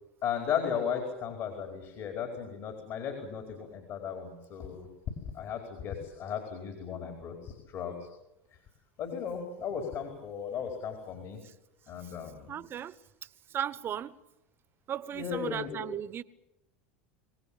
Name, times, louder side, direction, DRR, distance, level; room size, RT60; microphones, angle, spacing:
voice 1, 0.2-4.9 5.3-8.1 9.0-11.4 11.9-12.5 15.1-15.9, left 7 dB, 50° left, 4.8 m, -36 dB
voice 2, 12.5-12.9 13.5-14.2 14.9-16.2, right 10 dB, 35° right, 1.2 m, -36 dB
25.5 x 18.5 x 8.8 m
hypercardioid pair, 85°, 6 cm